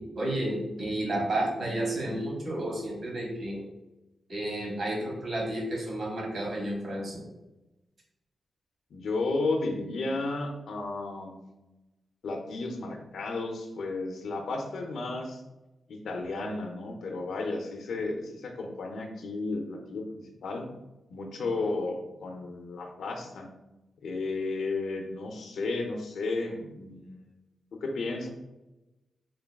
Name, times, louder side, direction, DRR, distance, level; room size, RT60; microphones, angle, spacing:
voice 1, 0.1-3.6 4.3-7.2, right 1 dB, 50° right, -2 dB, 1.2 m, -31 dB
voice 2, 8.9-11.4 12.2-15.4 15.9-20.7 21.1-23.5 24.0-27.3 27.7-28.3, left 3 dB, 80° left, 3 dB, 0.6 m, -33 dB
3.8 x 3.5 x 2.2 m, 1.0 s
wide cardioid pair, 155°, 0 cm